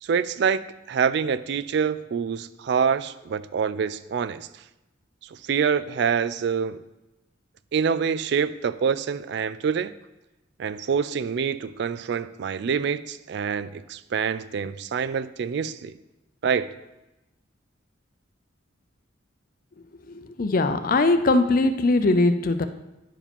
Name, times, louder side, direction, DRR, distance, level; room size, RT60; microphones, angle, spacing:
voice 1, 0.0-4.5 5.5-6.8 7.7-9.9 10.6-16.0 16.4-16.7, right 6 dB, 60° right, 16 dB, 0.3 m, -26 dB
voice 2, 20.1-22.7, left 2 dB, 45° left, 9 dB, 0.5 m, -21 dB
9.8 x 4.9 x 5.3 m, 1.0 s
head